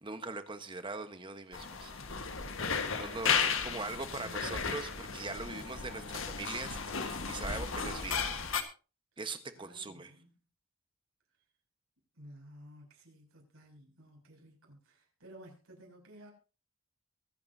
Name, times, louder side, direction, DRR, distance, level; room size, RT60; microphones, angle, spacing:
voice 1, 0.0-2.0 2.4-8.4 9.2-10.1, right 3 dB, 25° right, 1.2 m, -42 dB
sound 1, 1.5-8.6, left 6 dB, 70° left, 1.6 m, -34 dB
voice 2, 2.8-4.7 5.4-5.6 9.5-10.3 12.1-16.3, right 1 dB, 85° right, 7.0 m, -55 dB
23.5 x 9.5 x 2.8 m
head